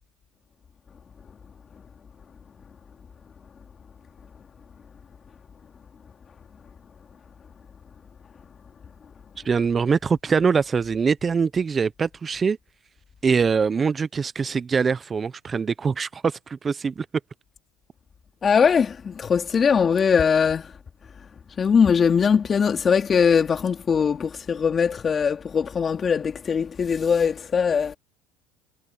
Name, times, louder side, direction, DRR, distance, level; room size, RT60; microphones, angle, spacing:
voice 1, 9.4-12.6 13.2-17.1, right 5 dB, 25° right, 0.6 m, -23 dB
voice 2, 18.4-20.7 21.6-28.0, left 6 dB, 30° left, 2.9 m, -21 dB
supercardioid pair, 100°, 0 cm